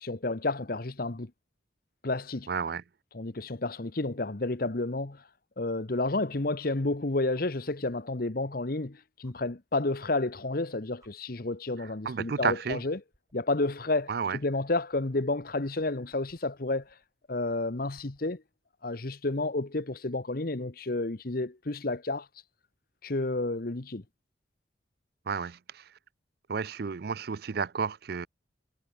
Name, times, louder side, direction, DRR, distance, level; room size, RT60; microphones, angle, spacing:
voice 1, 0.0-1.3 2.0-2.5 3.1-5.2 5.6-13.0 13.3-16.9 17.3-18.4 18.8-22.3 23.0-24.0, left 2 dB, 50° left, 1.1 m, -31 dB
voice 2, 2.5-2.8 12.1-12.8 14.1-14.4 25.3-25.9 26.5-28.3, right 6 dB, 55° right, 0.4 m, -31 dB
sound 1, 5.1-5.2 7.3-7.6 9.2-9.4 10.5-10.6 11.0-11.1 12.1-12.3 12.7-18.4 20.0-20.1, right 1 dB, 15° right, 7.1 m, -67 dB
head